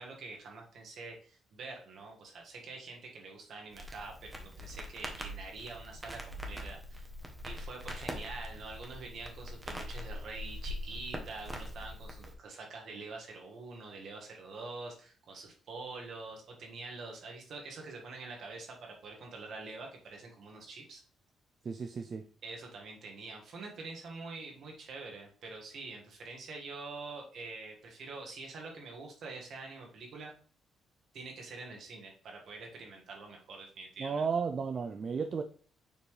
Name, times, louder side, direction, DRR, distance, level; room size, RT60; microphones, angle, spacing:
voice 1, 0.0-7.1 7.4-21.0 22.4-30.3 31.1-34.2, right 3 dB, 65° right, 1 dB, 1.7 m, -45 dB
Crackle, 3.7-12.3, equal, 10° right, 1.3 m, -43 dB
voice 2, 21.6-22.3 34.0-35.4, right 5 dB, 45° right, 7 dB, 0.5 m, -33 dB
6.9 x 4.2 x 3.2 m, 0.43 s
cardioid pair, 90°, 0 cm